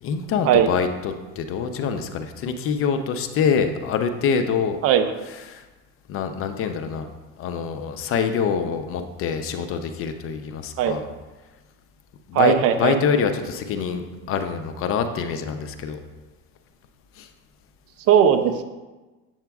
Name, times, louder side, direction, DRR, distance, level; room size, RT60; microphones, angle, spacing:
voice 1, 0.0-4.8 5.5-5.6 6.1-7.1 7.4-11.0 12.3-16.0 17.2-17.3, left 6 dB, 45° left, 8 dB, 0.6 m, -25 dB
voice 2, 12.3-13.0 18.1-18.6, right 9 dB, 55° right, 8 dB, 0.6 m, -18 dB
7.8 x 7.2 x 2.3 m, 1.2 s
cardioid pair, 130°, 29 cm